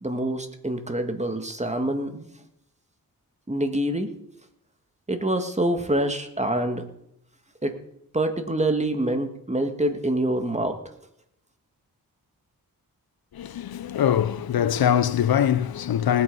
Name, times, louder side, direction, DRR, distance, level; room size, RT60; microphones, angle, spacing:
voice 1, 0.0-2.3 3.5-4.1 5.1-6.9 7.6-7.7 8.1-10.8, right 1 dB, 20° right, 1.9 m, -26 dB
voice 2, 13.3-16.2, left 9 dB, 75° left, 0.7 m, -23 dB
19.0 x 8.3 x 5.4 m
cardioid pair, 65°, 37 cm